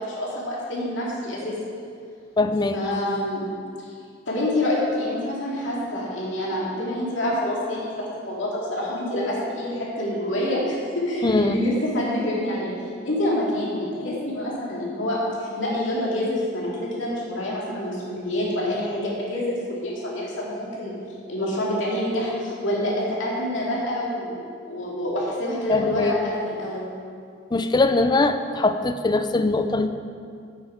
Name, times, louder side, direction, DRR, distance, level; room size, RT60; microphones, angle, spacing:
voice 1, 0.0-1.5 2.7-3.4 3.8-3.9 4.3-12.7 13.0-21.0 21.3-26.9, left 1 dB, 70° left, -5 dB, 2.5 m, -27 dB
voice 2, 2.4-2.8 11.2-11.6 25.7-26.1 27.5-29.9, left 2 dB, 20° left, 9 dB, 0.4 m, -21 dB
8.5 x 7.6 x 5.0 m, 2.3 s
head